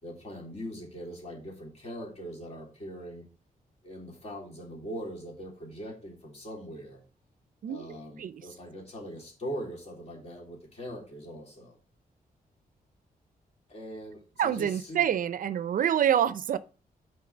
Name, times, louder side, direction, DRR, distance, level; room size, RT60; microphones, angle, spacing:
voice 1, 0.0-3.3 3.8-7.0 7.7-11.8 13.7-15.1, equal, 45° left, 3.1 m, -41 dB
voice 2, 14.4-16.6, right 9 dB, 60° right, 0.4 m, -26 dB
5.9 x 4.6 x 6.0 m
wide cardioid pair, 155°, 15 cm